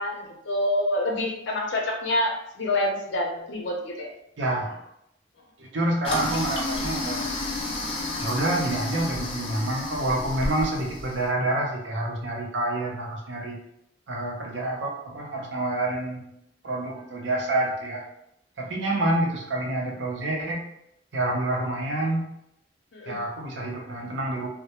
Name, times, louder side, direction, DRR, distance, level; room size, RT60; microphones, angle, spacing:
voice 1, 0.0-4.1 22.9-23.2, left 1 dB, 85° left, 1 dB, 0.5 m, -27 dB
voice 2, 4.4-4.8 5.6-7.3 8.2-13.6 14.1-16.3 16.6-18.0 18.6-20.6 21.1-22.3 23.1-24.5, right 1 dB, 85° right, -1 dB, 0.6 m, -28 dB
Toilet flush, 6.0-11.3, left 2 dB, 30° left, 0.4 m, -31 dB
2.2 x 2.0 x 2.8 m, 0.78 s
head